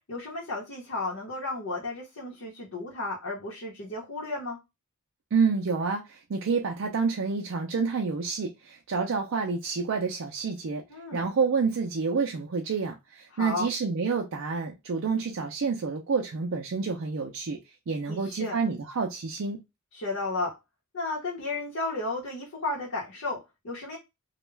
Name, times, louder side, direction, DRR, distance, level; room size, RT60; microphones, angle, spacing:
voice 1, 0.1-4.6 10.9-11.3 13.3-13.7 18.1-18.6 19.9-20.5 20.9-24.0, left 2 dB, 65° left, 0.9 m, -33 dB
voice 2, 5.3-10.8 11.1-17.6 17.9-19.6, right 5 dB, 65° right, 0.4 m, -28 dB
2.3 x 2.2 x 3.1 m
head